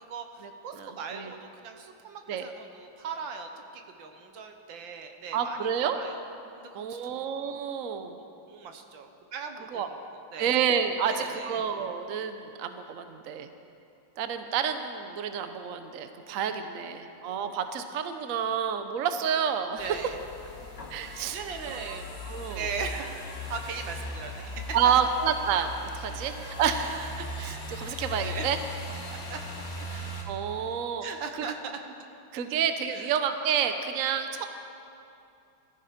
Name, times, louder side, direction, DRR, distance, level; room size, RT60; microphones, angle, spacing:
voice 1, 0.0-6.2 6.6-7.3 8.2-10.0 10.3-10.6 11.0-11.6 16.2-16.4 19.8-20.2 21.3-22.1 22.5-24.8 26.1-26.3 28.2-28.5 29.1-29.4 31.0-31.8 32.5-32.6 32.9-33.1, right 5 dB, 80° right, 5 dB, 1.8 m, -39 dB
voice 2, 0.8-1.3 2.3-2.5 5.3-6.0 6.7-8.2 9.7-9.9 10.4-13.5 14.2-19.8 20.9-21.4 21.7-22.0 22.2-22.6 24.7-28.6 28.9-29.0 29.9-31.0 32.3-34.5, right 7 dB, 55° right, 8 dB, 1.0 m, -29 dB
sound 1, 19.8-30.2, left 2 dB, 45° left, 2.5 m, -39 dB
19.0 x 13.5 x 5.1 m, 2.6 s
omnidirectional pair, 2.0 m